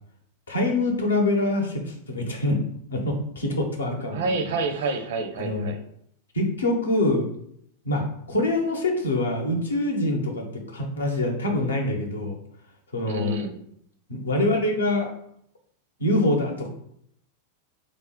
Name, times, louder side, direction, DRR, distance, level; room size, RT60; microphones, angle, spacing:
voice 1, 0.5-2.6 2.9-4.3 5.4-5.7 6.3-7.3 7.8-12.4 12.9-13.4 14.1-15.1 16.0-16.7, left 1 dB, 70° left, 3 dB, 0.7 m, -25 dB
voice 2, 4.1-5.8 13.1-13.6, right 3 dB, 55° right, 6 dB, 0.5 m, -28 dB
3.6 x 2.1 x 3.6 m, 0.69 s
figure-of-eight pair, 90°, 0 cm